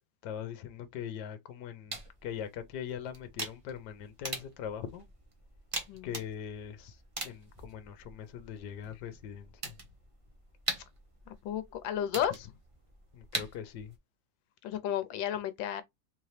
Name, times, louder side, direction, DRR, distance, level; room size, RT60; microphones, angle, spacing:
voice 1, 0.2-5.1 6.0-7.0 7.2-9.7 13.1-13.9, left 8 dB, 70° left, 1.3 m, -41 dB
sound 1, 1.9-14.0, right 2 dB, 45° right, 0.4 m, -43 dB
voice 2, 11.4-12.5 14.6-15.8, left 10 dB, 90° left, 1.4 m, -33 dB
4.0 x 2.8 x 3.2 m
omnidirectional pair, 2.0 m